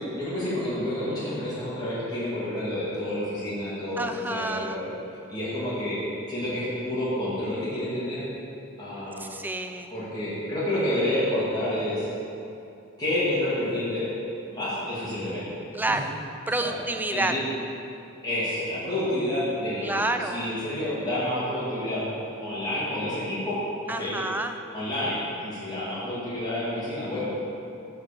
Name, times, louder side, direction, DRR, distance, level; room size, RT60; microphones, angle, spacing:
voice 1, 0.1-4.9 5.3-6.0 6.3-8.3 8.8-9.2 9.9-12.1 13.0-14.1 14.5-15.6 15.9-16.0 16.5-16.7 17.1-17.4 18.2-22.0 22.4-23.6 23.8-24.2 24.7-27.3, left 1 dB, 20° left, -10 dB, 2.4 m, -29 dB
voice 2, 4.0-4.8 9.2-9.9 15.7-16.1 16.5-17.3 19.8-20.5 23.9-24.6, right 2 dB, 10° right, 6 dB, 0.4 m, -29 dB
9.5 x 4.8 x 6.8 m, 2.6 s
head